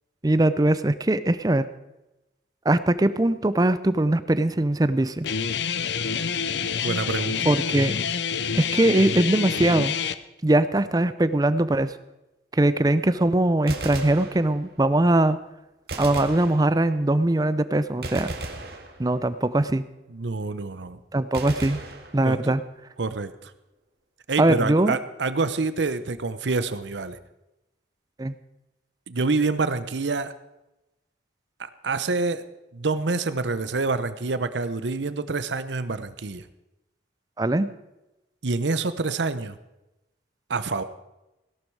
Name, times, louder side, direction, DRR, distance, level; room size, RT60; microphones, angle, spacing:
voice 1, 0.2-1.7 2.7-5.3 7.5-8.0 8.5-9.9 10.4-11.9 12.5-15.4 16.0-18.3 19.0-19.8 21.1-21.8 22.1-22.6 24.4-25.0 28.2-28.3 37.4-37.7, right 1 dB, 20° right, 14 dB, 0.5 m, -21 dB
Guitar, 5.2-10.2, left 6 dB, 75° left, 0.7 m, -27 dB
voice 2, 6.8-7.4 20.1-21.0 22.2-22.5 23.0-23.5 24.3-27.2 29.1-30.3 31.6-32.4 32.7-36.4 38.4-39.6 40.5-40.8, right 3 dB, 85° right, 13 dB, 0.8 m, -27 dB
Gunshot gunfire, 13.5-14.9 15.9-17.1 18.0-19.5 21.3-22.7, right 2 dB, 60° right, 1.9 m, -36 dB
17.0 x 12.0 x 4.7 m, 0.97 s
head